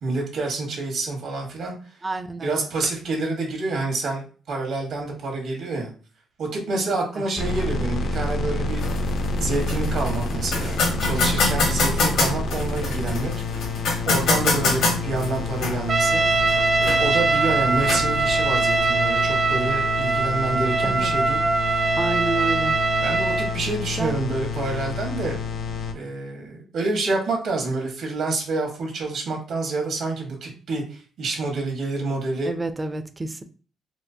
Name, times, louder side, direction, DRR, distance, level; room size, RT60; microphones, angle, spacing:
voice 1, 0.0-1.7 2.4-5.9 6.4-8.8 9.4-13.3 14.0-16.2 16.8-21.4 21.7-21.9 23.0-25.4 25.9-32.5, right 3 dB, 75° right, 1.5 m, -28 dB
voice 2, 2.0-2.5 20.8-21.1 22.0-22.8 24.0-24.2 32.5-33.4, right 2 dB, 25° right, 0.4 m, -29 dB
sound 1, 7.4-25.9, left 3 dB, 65° left, 0.5 m, -29 dB
sound 2, 8.8-18.8, left 3 dB, 90° left, 1.4 m, -26 dB
Trumpet, 15.9-23.6, right 4 dB, 45° right, 0.7 m, -22 dB
4.4 x 2.0 x 2.7 m
cardioid pair, 90°, 0 cm